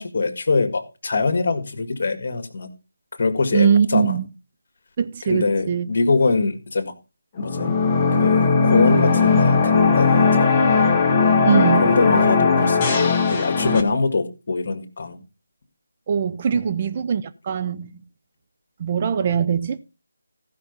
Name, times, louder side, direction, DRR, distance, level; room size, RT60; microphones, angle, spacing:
voice 1, 0.0-2.7 3.2-4.2 5.2-6.9 7.4-7.8 8.1-10.6 11.8-12.9 13.3-15.2 16.5-16.8, left 3 dB, 45° left, 1.9 m, -23 dB
voice 2, 3.5-4.2 5.0-5.9 11.4-11.9 16.1-17.9 18.8-19.8, right 7 dB, 30° right, 0.6 m, -21 dB
sound 1, 7.4-13.8, left 4 dB, 20° left, 1.7 m, -18 dB
14.5 x 5.9 x 5.3 m
figure-of-eight pair, 165°, 0 cm